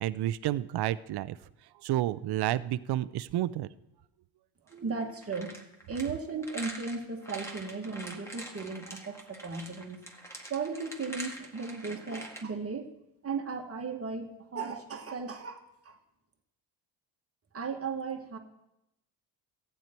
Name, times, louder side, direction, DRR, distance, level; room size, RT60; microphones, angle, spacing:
voice 1, 0.0-1.4 1.8-3.7, right 13 dB, 55° right, 16 dB, 0.6 m, -30 dB
sound 1, 4.7-12.4, right 1 dB, 5° left, 1.9 m, -44 dB
voice 2, 4.7-5.5 5.9-10.0 10.5-12.9 13.2-16.0 17.5-18.4, right 4 dB, 30° right, 3 dB, 1.7 m, -36 dB
14.5 x 9.1 x 4.5 m, 0.87 s
cardioid pair, 95°, 48 cm